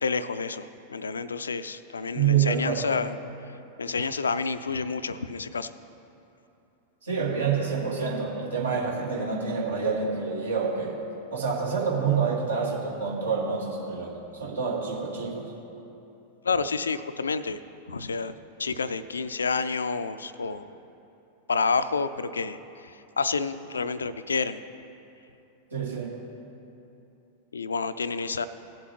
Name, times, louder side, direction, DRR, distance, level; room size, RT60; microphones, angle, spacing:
voice 1, 0.0-3.1 3.8-5.7 16.4-17.6 17.9-20.7 21.5-24.6 27.5-28.5, left 4 dB, 75° left, 14 dB, 0.3 m, -29 dB
voice 2, 2.1-2.8 7.0-11.0 11.3-14.2 14.4-15.5 25.7-26.2, right 6 dB, 70° right, -2 dB, 1.9 m, -27 dB
17.0 x 7.2 x 3.1 m, 2.8 s
figure-of-eight pair, 90°, 0 cm